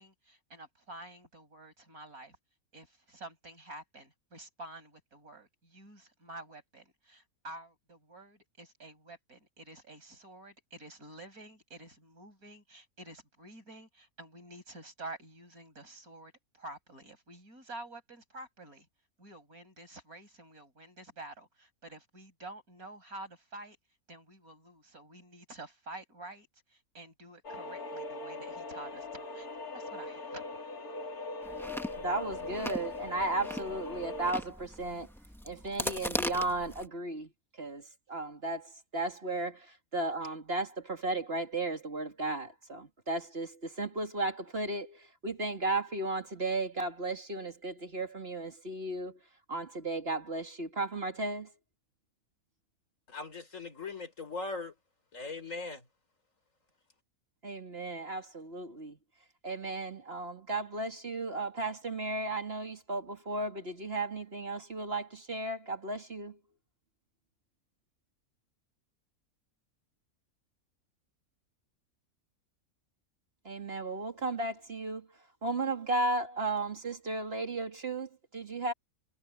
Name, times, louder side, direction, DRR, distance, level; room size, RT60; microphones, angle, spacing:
voice 1, 0.0-2.4 2.7-18.9 19.2-23.8 24.1-29.5 29.7-30.6, right 2 dB, 80° right, 6.8 m, -49 dB
sound 1, 27.4-34.4, left 3 dB, 85° left, 3.2 m, -41 dB
Chewing mastication, 31.4-36.9, equal, ahead, 1.6 m, -39 dB
voice 2, 32.0-35.1 35.4-37.3 37.6-49.2 49.5-51.5 57.4-59.0 59.4-66.4 73.4-75.1 75.4-78.7, right 2 dB, 45° right, 2.5 m, -35 dB
voice 3, 53.1-54.7 55.1-55.8, left 3 dB, 60° left, 4.8 m, -39 dB
omnidirectional pair, 1.5 m